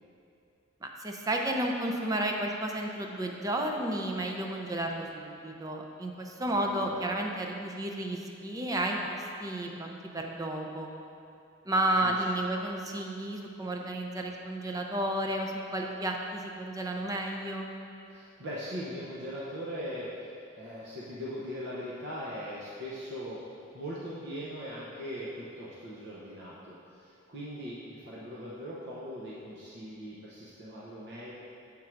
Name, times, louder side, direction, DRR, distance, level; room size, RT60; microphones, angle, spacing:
voice 1, 0.8-10.9 11.6-17.7, right 1 dB, 20° right, 2 dB, 0.5 m, -32 dB
voice 2, 6.5-7.1 12.0-12.3 18.1-23.4 23.7-31.3, equal, 60° right, -7 dB, 0.8 m, -40 dB
7.3 x 3.7 x 4.5 m, 2.5 s
head